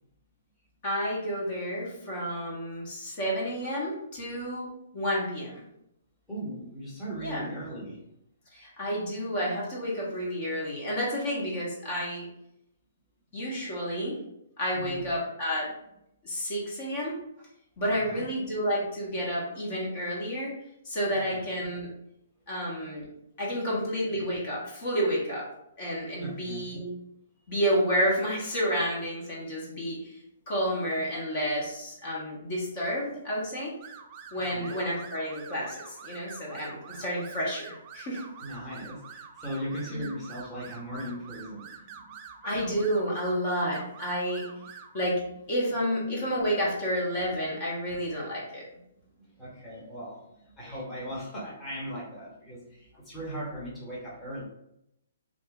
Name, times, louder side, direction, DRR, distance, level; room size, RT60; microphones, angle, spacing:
voice 1, 0.8-5.6 7.2-7.4 8.5-12.3 13.3-14.2 14.6-15.7 16.2-17.2 17.8-20.5 20.8-21.9 22.5-23.1 23.4-25.5 25.8-26.9 27.5-30.2 30.5-33.7 34.3-38.2 39.9-40.0 42.4-44.4 44.9-45.2 45.5-48.6, equal, 45° left, -4 dB, 1.0 m, -30 dB
voice 2, 6.3-8.0 14.8-15.1 18.1-18.2 21.3-21.5 26.2-26.6 34.3-34.7 38.4-42.1 49.1-54.4, equal, 10° left, -7 dB, 1.1 m, -38 dB
sound 1, 33.8-45.0, right 7 dB, 30° right, 0.4 m, -47 dB
2.7 x 2.5 x 3.5 m, 0.80 s
hypercardioid pair, 145°, 0 cm